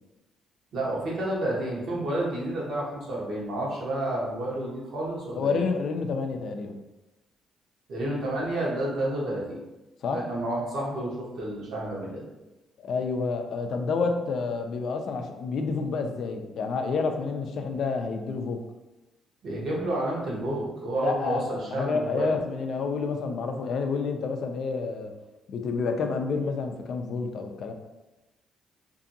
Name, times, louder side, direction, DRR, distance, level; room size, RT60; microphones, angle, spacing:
voice 1, 0.7-5.6 7.9-9.6 10.1-12.2 19.4-22.4, right 1 dB, 70° right, -4 dB, 1.0 m, -30 dB
voice 2, 5.3-6.7 10.0-10.2 12.8-18.6 21.0-25.1 25.5-27.7, left 4 dB, 65° left, 5 dB, 0.3 m, -29 dB
2.6 x 2.5 x 2.6 m, 1.0 s
cardioid pair, 90°, 0 cm